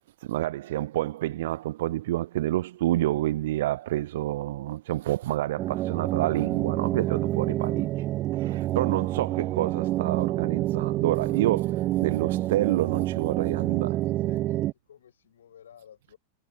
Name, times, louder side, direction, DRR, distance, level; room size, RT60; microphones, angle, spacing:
voice 1, 0.2-8.1 8.3-14.0, right 15 dB, 55° right, 0.5 m, -28 dB
sound 1, 5.6-14.7, right 15 dB, 35° right, 1.0 m, -28 dB
voice 2, 8.9-9.9 13.4-16.2, left 9 dB, 65° left, 6.3 m, -54 dB
figure-of-eight pair, 90°, 0 cm